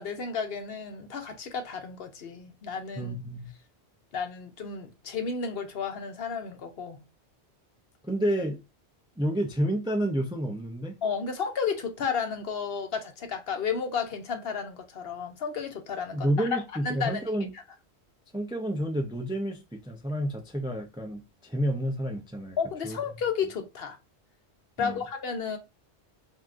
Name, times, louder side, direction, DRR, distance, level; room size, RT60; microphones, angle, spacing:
voice 1, 0.0-3.2 4.1-7.0 11.0-16.6 16.8-17.3 22.6-24.0 24.8-25.6, left 6 dB, 65° left, 0.9 m, -32 dB
voice 2, 3.0-3.5 8.0-8.6 9.2-10.9 16.1-17.5 18.3-22.6 22.8-23.0 24.8-25.0, right 1 dB, 5° right, 0.4 m, -30 dB
3.6 x 2.7 x 2.4 m
omnidirectional pair, 1.1 m